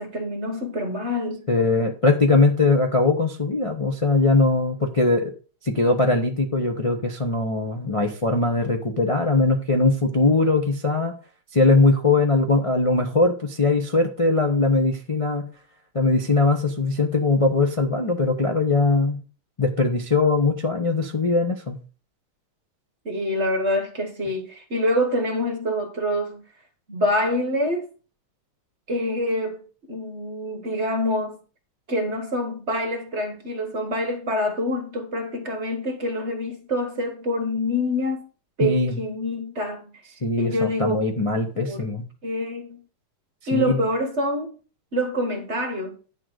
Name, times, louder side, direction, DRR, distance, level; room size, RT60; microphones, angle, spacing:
voice 1, 0.0-1.5 23.0-26.4 26.9-27.9 28.9-29.6 29.9-31.4 31.9-38.3 38.6-39.9 40.4-41.0 41.5-41.8 42.2-42.8 43.5-44.5 44.9-46.0, left 1 dB, 40° right, 1.2 m, -26 dB
voice 2, 1.5-5.3 5.6-11.1 11.5-15.5 15.9-19.2 19.6-21.8 38.6-39.0 40.2-42.1 43.5-43.8, left 3 dB, 35° left, 0.5 m, -21 dB
9.8 x 3.9 x 6.4 m
omnidirectional pair, 2.3 m